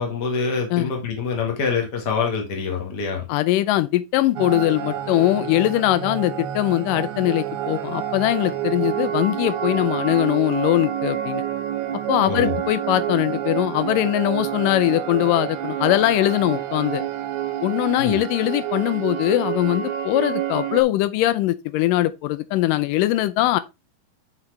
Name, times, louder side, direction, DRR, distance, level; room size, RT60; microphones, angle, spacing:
voice 1, 0.0-3.2 12.3-12.5 18.0-18.2, left 5 dB, 40° left, 1.7 m, -25 dB
voice 2, 3.3-11.4 12.1-17.0 17.6-23.6, left 15 dB, 80° left, 2.2 m, -21 dB
sound 1, 4.4-20.8, right 11 dB, 75° right, 2.0 m, -28 dB
7.3 x 6.2 x 3.4 m
omnidirectional pair, 3.9 m